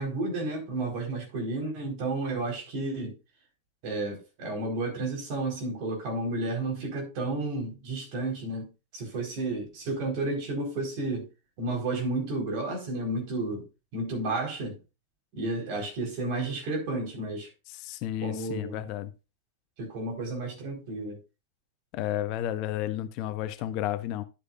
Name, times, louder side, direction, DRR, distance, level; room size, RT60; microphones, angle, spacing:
voice 1, 0.0-3.1 3.8-11.3 11.6-13.7 13.9-14.8 15.3-17.5 18.2-18.8 19.8-21.2, right 2 dB, 45° right, 4.4 m, -32 dB
voice 2, 17.7-19.1 21.9-24.2, left 12 dB, 40° left, 0.6 m, -32 dB
11.5 x 8.1 x 2.5 m
figure-of-eight pair, 90°, 0 cm